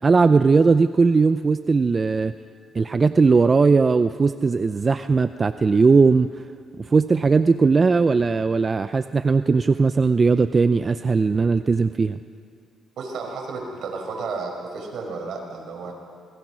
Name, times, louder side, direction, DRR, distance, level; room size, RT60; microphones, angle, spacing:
voice 1, 0.0-2.3 2.7-6.4 6.8-12.2, right 4 dB, 35° right, 11 dB, 0.6 m, -18 dB
voice 2, 13.0-15.9, right 4 dB, 70° right, 1 dB, 5.6 m, -32 dB
27.5 x 20.5 x 6.3 m, 2.3 s
cardioid pair, 90°, 0 cm